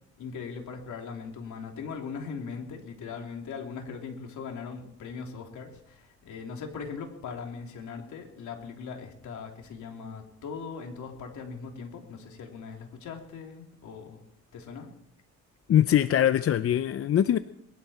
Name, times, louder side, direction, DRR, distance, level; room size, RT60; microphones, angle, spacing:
voice 1, 0.2-14.2 14.5-14.9, left 5 dB, 75° left, 2 dB, 3.3 m, -40 dB
voice 2, 15.7-17.4, left 10 dB, 50° left, 12 dB, 0.6 m, -22 dB
22.0 x 12.0 x 4.4 m, 0.75 s
cardioid pair, 90°, 30 cm